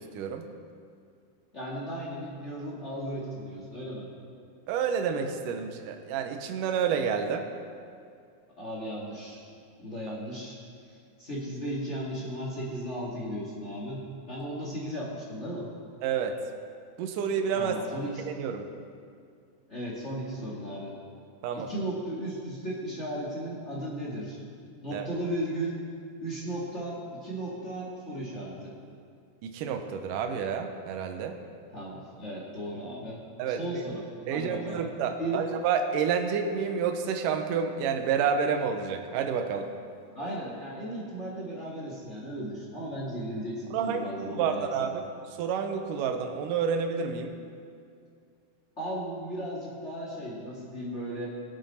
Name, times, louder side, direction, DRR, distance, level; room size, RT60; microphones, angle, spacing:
voice 1, 0.1-0.5 4.7-7.5 16.0-16.4 17.0-17.8 18.3-18.7 21.4-21.7 24.9-25.1 29.4-31.4 33.4-33.8 34.3-39.7 43.7-44.1 44.4-47.4, right 6 dB, 75° right, 5 dB, 2.0 m, -29 dB
voice 2, 1.5-4.1 8.6-9.4 9.8-10.6 10.8-15.7 17.5-18.2 19.7-20.9 21.5-24.4 24.8-25.8 26.2-28.7 31.7-33.2 33.5-34.8 35.2-35.5 40.1-44.9 48.8-51.3, right 1 dB, 30° left, -6 dB, 1.2 m, -36 dB
21.5 x 8.2 x 4.3 m, 2.3 s
omnidirectional pair, 4.8 m